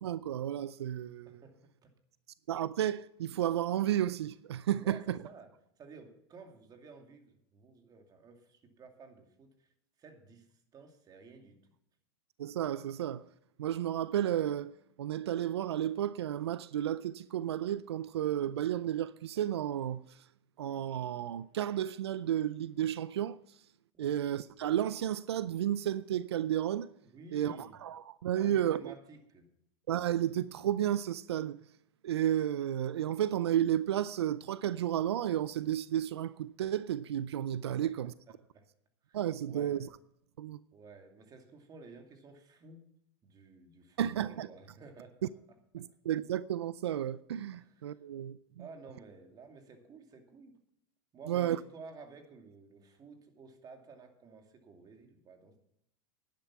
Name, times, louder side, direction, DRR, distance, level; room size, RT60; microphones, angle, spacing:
voice 1, 0.0-1.3 2.5-5.2 12.4-13.2 13.6-20.2 20.6-23.4 24.0-26.9 27.3-28.9 29.9-31.6 32.0-38.1 39.1-39.8 40.4-40.6 44.0-44.5 45.7-48.4 51.3-51.6, right 11 dB, 90° right, 0.4 m, -32 dB
voice 2, 1.3-1.9 4.8-5.5 5.8-9.7 10.0-10.5 10.7-11.6 24.0-24.2 27.1-27.8 28.3-29.5 37.6-37.9 38.5-38.7 39.1-39.9 40.7-42.9 43.2-45.3 45.8-45.9 47.5-48.0 48.6-50.5 51.1-55.6, right 4 dB, 30° right, 2.6 m, -53 dB
11.0 x 10.5 x 5.9 m
hypercardioid pair, 110°, 13 cm